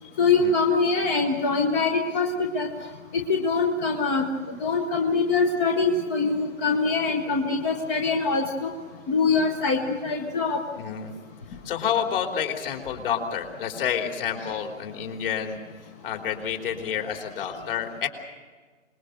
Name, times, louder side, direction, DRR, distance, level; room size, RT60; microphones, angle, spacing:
voice 1, 0.2-2.7 3.3-4.3 4.6-8.7 9.1-10.6, left 4 dB, 15° left, 3 dB, 0.8 m, -23 dB
voice 2, 10.8-11.1 11.6-15.6 16.0-18.1, left 8 dB, 45° left, 3 dB, 3.6 m, -29 dB
26.0 x 21.0 x 6.7 m, 1.4 s
hypercardioid pair, 155°, 40 cm